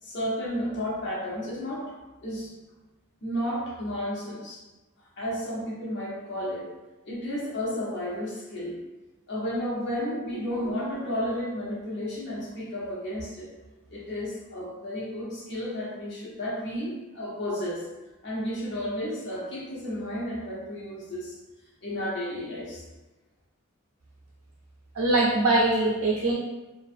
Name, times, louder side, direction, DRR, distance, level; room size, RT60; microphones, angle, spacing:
voice 1, 0.0-1.9 2.2-2.5 3.2-4.6 5.2-6.7 7.0-8.8 9.3-13.5 13.9-17.9 18.2-21.4 21.8-22.8, equal, 50° left, -5 dB, 0.7 m, -32 dB
voice 2, 25.0-26.3, right 2 dB, 60° right, -4 dB, 0.4 m, -22 dB
2.4 x 2.4 x 2.5 m, 1.1 s
head